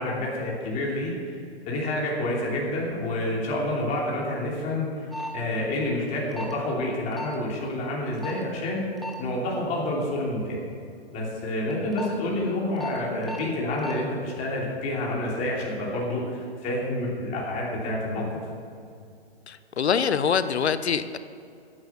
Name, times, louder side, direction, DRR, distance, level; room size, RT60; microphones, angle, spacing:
voice 1, 0.0-1.4 1.6-8.9 9.2-10.6 11.1-18.3, left 1 dB, 20° left, -4 dB, 2.9 m, -28 dB
sound 1, 5.1-5.3 6.3-6.5 7.2-7.3 8.2-8.4 9.0-9.1 11.7-12.1 12.8-12.9 13.2-13.4 13.8-13.9, left 1 dB, ahead, 1.2 m, -34 dB
voice 2, 19.5-21.2, left 7 dB, 85° left, 13 dB, 0.9 m, -24 dB
15.0 x 9.8 x 5.7 m, 2.5 s
hypercardioid pair, 140°, 32 cm